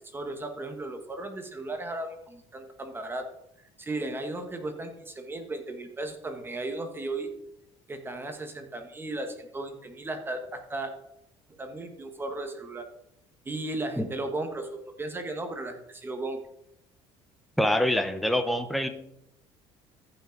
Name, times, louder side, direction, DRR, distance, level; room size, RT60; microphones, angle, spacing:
voice 1, 0.1-3.3 3.8-7.3 7.9-10.9 11.5-12.9 13.4-16.4, right 2 dB, 20° right, 6 dB, 1.2 m, -35 dB
voice 2, 17.6-18.9, left 1 dB, ahead, 7 dB, 0.8 m, -25 dB
14.0 x 5.7 x 3.9 m, 0.79 s
cardioid pair, 125°, 12 cm